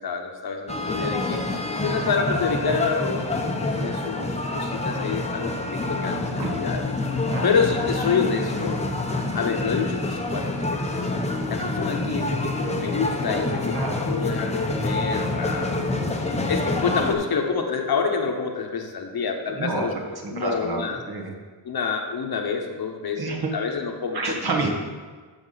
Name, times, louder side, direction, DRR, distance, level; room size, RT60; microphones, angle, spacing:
voice 1, 0.0-1.4 1.8-3.3 3.6-6.8 7.4-8.8 9.3-10.8 11.5-15.9 16.5-19.9 20.3-21.0 21.6-24.4, left 5 dB, 55° left, 3 dB, 1.1 m, -27 dB
sound 1, 0.7-17.1, left 2 dB, 15° left, 0.8 m, -27 dB
voice 2, 19.5-19.9 20.2-21.3 23.2-23.5 24.1-24.7, right 3 dB, 55° right, -1 dB, 1.7 m, -29 dB
13.5 x 5.4 x 4.0 m, 1.5 s
wide cardioid pair, 135°, 44 cm